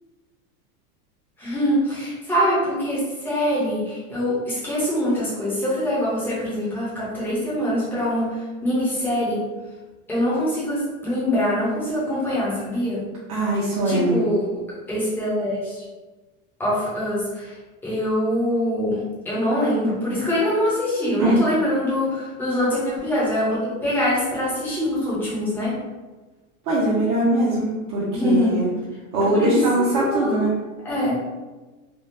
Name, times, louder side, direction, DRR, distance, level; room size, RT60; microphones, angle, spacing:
voice 1, 1.4-8.3 8.6-9.4 10.1-13.0 13.8-14.5 14.9-15.8 16.6-17.5 17.8-25.8 28.1-28.6 29.2-29.6 29.9-30.4 30.8-31.1, left 1 dB, 5° left, -9 dB, 0.6 m, -24 dB
voice 2, 13.3-14.1 21.2-21.4 26.7-28.7 29.1-30.5, right 1 dB, 35° right, -8 dB, 0.6 m, -21 dB
3.5 x 2.3 x 2.6 m, 1.2 s
supercardioid pair, 165°, 44 cm